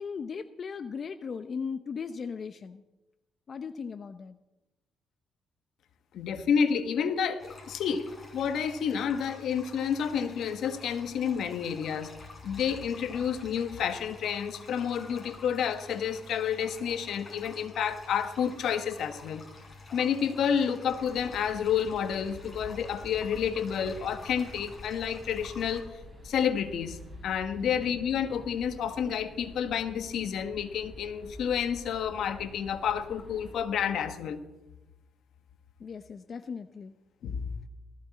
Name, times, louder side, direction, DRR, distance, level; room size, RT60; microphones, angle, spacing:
voice 1, 0.0-2.8 3.5-4.4 27.5-27.7 35.8-36.9, left 5 dB, 45° left, 9 dB, 0.7 m, -37 dB
voice 2, 6.1-8.1 8.3-12.1 12.4-19.4 19.9-25.9 26.2-27.0 27.2-34.4 37.2-37.5, left 7 dB, 75° left, 9 dB, 1.3 m, -30 dB
sound 1, 7.4-25.8, left 3 dB, 30° left, 6.0 m, -49 dB
sound 2, 20.9-33.6, left 1 dB, 5° right, 7.5 m, -48 dB
18.5 x 14.5 x 4.2 m, 1.0 s
cardioid pair, 90°, 0 cm